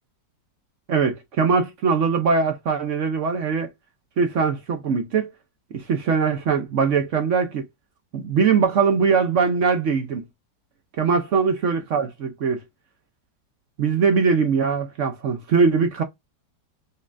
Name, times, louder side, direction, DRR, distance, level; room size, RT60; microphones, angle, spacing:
voice 1, 0.9-3.7 4.2-5.3 5.9-7.6 8.1-10.3 11.0-12.6 13.8-16.0, right 5 dB, 60° right, 0.8 m, -21 dB
5.3 x 2.3 x 2.5 m
omnidirectional pair, 2.0 m